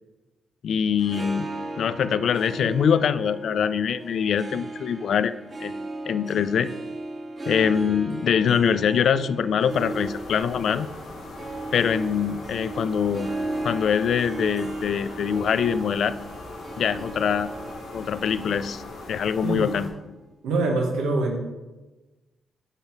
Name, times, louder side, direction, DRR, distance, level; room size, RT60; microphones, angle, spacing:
voice 1, 0.6-1.5 1.8-5.8 6.1-6.7 7.5-10.9 11.7-13.3 13.6-16.2 16.8-17.5 17.9-18.8 19.1-19.9, left 7 dB, 70° left, 14 dB, 0.3 m, -24 dB
Harp, 0.9-20.2, right 2 dB, 40° right, 1.6 m, -36 dB
sound 1, 9.7-19.9, left 2 dB, 85° left, 1.8 m, -40 dB
voice 2, 20.4-21.4, right 2 dB, 90° right, 1 dB, 1.3 m, -24 dB
9.8 x 3.9 x 4.5 m, 1.1 s
supercardioid pair, 60°, 0 cm